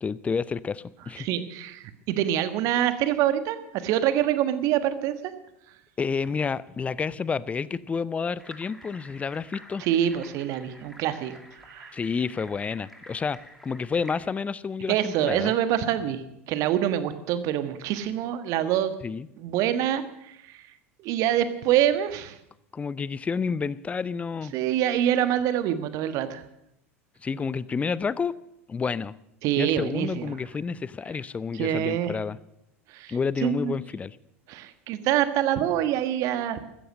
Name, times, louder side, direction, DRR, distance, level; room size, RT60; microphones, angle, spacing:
voice 1, 0.0-1.3 6.0-9.9 11.9-15.5 19.0-19.3 22.7-24.5 27.2-28.4 28.7-29.2 29.6-32.4 33.1-34.2, left 5 dB, 15° left, 20 dB, 0.6 m, -30 dB
voice 2, 1.2-5.3 9.8-11.9 14.9-18.9 19.4-20.6 21.0-22.4 24.5-26.4 29.4-30.3 31.6-32.1 32.9-33.2 33.4-33.7 34.5-36.6, right 11 dB, 45° right, 11 dB, 1.4 m, -26 dB
sound 1, 8.4-14.1, equal, ahead, 2.6 m, -49 dB
15.0 x 13.5 x 6.4 m, 0.82 s
figure-of-eight pair, 80°, 8 cm